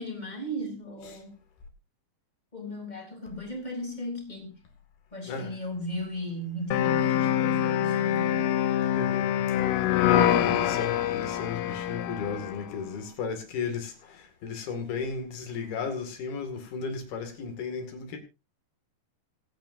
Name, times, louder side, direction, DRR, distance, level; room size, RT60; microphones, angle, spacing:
voice 1, 0.0-1.4 2.5-4.6 5.1-8.5 10.2-10.7, equal, 10° left, 2.5 m, -36 dB
voice 2, 5.2-5.6 9.0-18.2, left 5 dB, 60° left, 3.9 m, -35 dB
sound 1, 6.7-12.6, left 11 dB, 80° left, 2.2 m, -25 dB
25.0 x 8.5 x 2.7 m
omnidirectional pair, 5.3 m